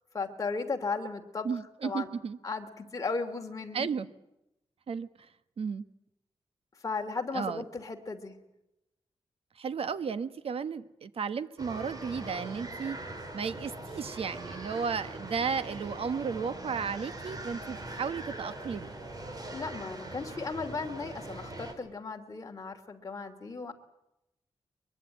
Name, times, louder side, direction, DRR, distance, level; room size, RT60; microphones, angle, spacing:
voice 1, 0.1-1.5 1.8-2.1 2.4-3.9 6.8-8.4 19.5-23.7, left 4 dB, 35° left, 3 dB, 2.6 m, -36 dB
voice 2, 1.4-2.4 3.7-4.1 4.9-5.3 5.6-5.8 7.3-7.6 9.6-13.0 13.3-18.9, right 6 dB, 75° right, 13 dB, 1.2 m, -34 dB
sound 1, 11.6-21.7, right 2 dB, 40° right, 3.9 m, -42 dB
22.5 x 22.5 x 8.9 m, 0.87 s
wide cardioid pair, 145°, 10 cm